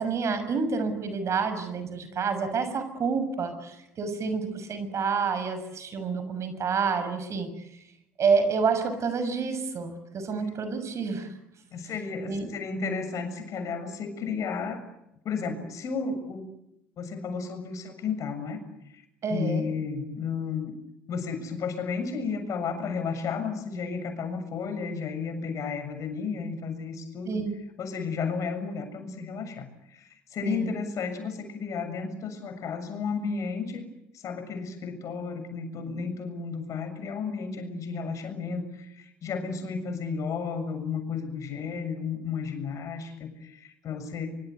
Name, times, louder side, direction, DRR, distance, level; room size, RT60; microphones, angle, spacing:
voice 1, 0.0-7.5 8.2-11.3 12.2-12.5 19.2-19.7 27.2-27.6 30.4-30.7, right 5 dB, 45° right, 11 dB, 6.6 m, -28 dB
voice 2, 11.7-14.8 15.2-16.4 17.0-19.0 19.3-20.7 21.1-27.5 27.8-33.9 34.1-44.4, left 5 dB, 50° left, 8 dB, 7.1 m, -33 dB
26.0 x 25.0 x 8.1 m, 0.83 s
hypercardioid pair, 60°, 7 cm